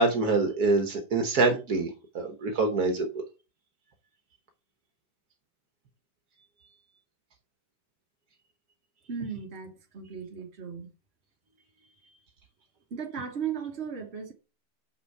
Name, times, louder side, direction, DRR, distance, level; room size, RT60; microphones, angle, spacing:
voice 1, 0.0-3.2, right 3 dB, 65° right, 1.6 m, -25 dB
voice 2, 9.1-10.9 12.9-14.3, right 7 dB, 40° right, 1.6 m, -36 dB
6.5 x 5.8 x 4.7 m
omnidirectional pair, 1.8 m